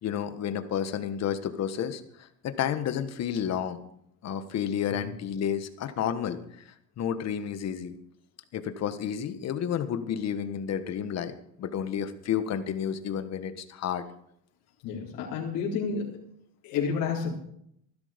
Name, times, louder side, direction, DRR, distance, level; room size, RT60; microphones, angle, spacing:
voice 1, 0.0-3.8 4.2-6.4 7.0-7.9 8.5-11.3 11.6-14.0, left 9 dB, 45° left, 10 dB, 1.5 m, -31 dB
voice 2, 14.8-16.2 16.6-17.3, left 6 dB, 65° left, -5 dB, 4.3 m, -30 dB
15.5 x 12.5 x 5.2 m, 0.72 s
cardioid pair, 130°, 36 cm